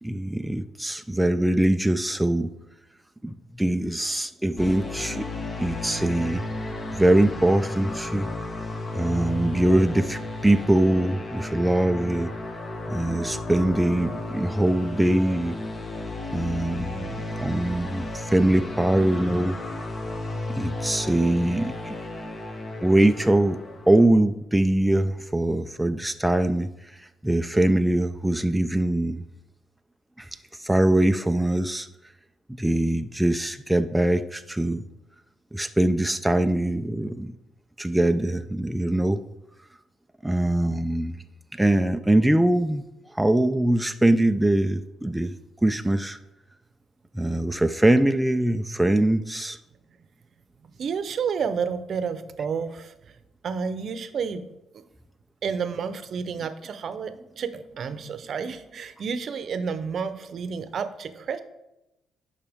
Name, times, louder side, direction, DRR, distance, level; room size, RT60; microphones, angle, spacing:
voice 1, 0.0-2.6 3.2-5.3 5.6-6.4 6.9-8.3 8.9-12.4 12.9-15.6 16.3-19.6 20.5-22.0 22.8-23.6 23.9-27.0 27.2-29.2 30.2-31.9 32.5-34.9 35.5-37.3 37.8-39.2 40.2-41.2 41.5-42.8 43.1-45.3 45.6-46.2 47.1-49.6, right 1 dB, 5° right, 0.4 m, -22 dB
sound 1, 4.6-24.1, left 2 dB, 35° left, 1.1 m, -33 dB
voice 2, 50.8-52.9 53.4-54.4 55.4-61.4, right 6 dB, 60° right, 0.7 m, -30 dB
10.5 x 5.5 x 3.5 m
cardioid pair, 90°, 0 cm